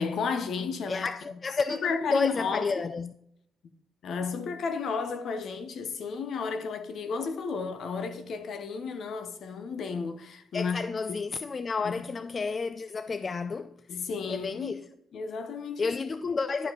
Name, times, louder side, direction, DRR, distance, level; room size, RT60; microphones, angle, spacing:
voice 1, 0.0-1.1 1.7-2.7 4.0-10.8 11.1-11.2 11.8-11.9 13.9-14.8 15.1-16.0, left 5 dB, 65° left, 1.0 m, -32 dB
voice 2, 0.9-3.1 10.5-13.7 14.3-14.8 15.8-16.7, left 4 dB, 35° left, 0.4 m, -31 dB
11.0 x 5.1 x 3.9 m
cardioid pair, 90°, 0 cm